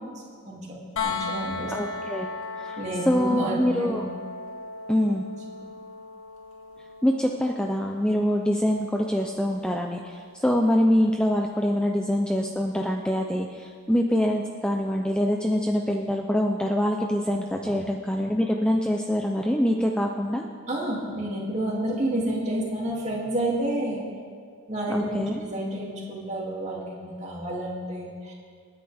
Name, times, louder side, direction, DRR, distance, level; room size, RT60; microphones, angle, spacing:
sound 1, 1.0-12.8 14.7-14.8, left 4 dB, 65° left, 2.0 m, -38 dB
voice 1, 1.0-1.7 2.8-4.0 5.6-5.8 17.6-17.8 20.7-24.0 24.7-28.3, right 1 dB, 30° right, -4 dB, 2.6 m, -30 dB
voice 2, 1.7-2.3 2.6-2.8 3.1-4.0 4.9-5.2 7.0-20.4 24.9-25.4, equal, 5° left, 1 dB, 0.5 m, -24 dB
27.0 x 9.9 x 3.5 m, 2.1 s
head